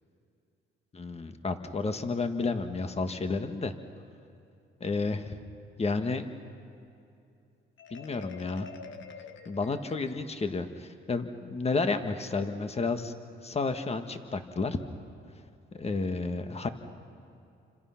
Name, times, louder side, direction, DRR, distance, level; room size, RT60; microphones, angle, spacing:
voice 1, 0.9-3.7 4.8-5.4 5.8-6.3 7.9-8.7 9.4-13.1 13.4-14.8 15.7-16.7, left 3 dB, 30° left, 8 dB, 1.5 m, -31 dB
Marimba xylophone, 7.8-10.5, left 6 dB, 75° left, 1.4 m, -47 dB
29.5 x 26.0 x 5.8 m, 2.6 s
cardioid pair, 90°, 20 cm